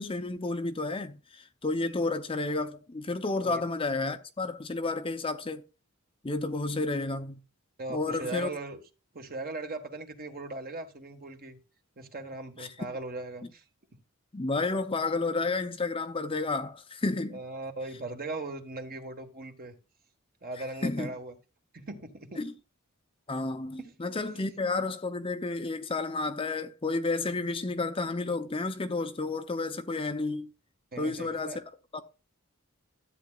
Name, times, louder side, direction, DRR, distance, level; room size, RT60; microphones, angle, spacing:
voice 1, 0.0-5.6 6.2-7.4 7.9-8.5 12.6-12.7 14.3-17.4 20.8-21.1 22.4-22.5 23.3-30.5 31.0-31.6 31.9-32.0, left 3 dB, 25° left, 0.6 m, -31 dB
voice 2, 7.8-8.8 9.1-11.6 12.0-13.7 16.4-16.5 17.3-19.8 20.4-21.3 21.7-22.4 23.8-24.3 30.9-31.6, right 2 dB, 45° right, 1.5 m, -39 dB
13.0 x 8.6 x 2.4 m
head